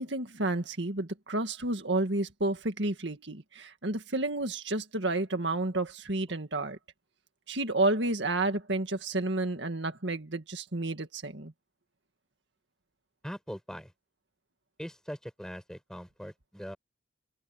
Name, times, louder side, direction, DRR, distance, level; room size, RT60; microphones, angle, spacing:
voice 1, 0.0-6.8 7.5-11.5, right 2 dB, 70° right, 2.0 m, -31 dB
voice 2, 13.2-13.9 14.8-16.8, equal, 5° left, 5.9 m, -41 dB
head